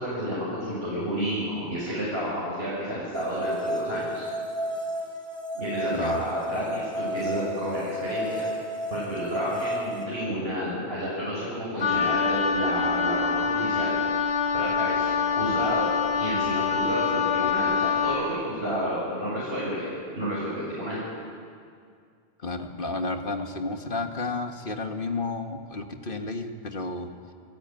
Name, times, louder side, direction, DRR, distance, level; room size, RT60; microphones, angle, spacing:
voice 1, 0.0-4.2 5.5-8.5 8.9-14.2 14.5-15.9 16.2-19.9 20.2-21.0, equal, 65° right, -7 dB, 6.9 m, -30 dB
sound 1, 3.1-10.1, right 1 dB, 30° right, 3.8 m, -32 dB
voice 2, 5.9-6.2 22.4-27.1, left 3 dB, 55° left, 5 dB, 1.7 m, -32 dB
Wind instrument woodwind instrument, 11.8-18.2, left 6 dB, 80° left, 2.0 m, -25 dB
29.5 x 15.0 x 9.1 m, 2.2 s
omnidirectional pair, 1.1 m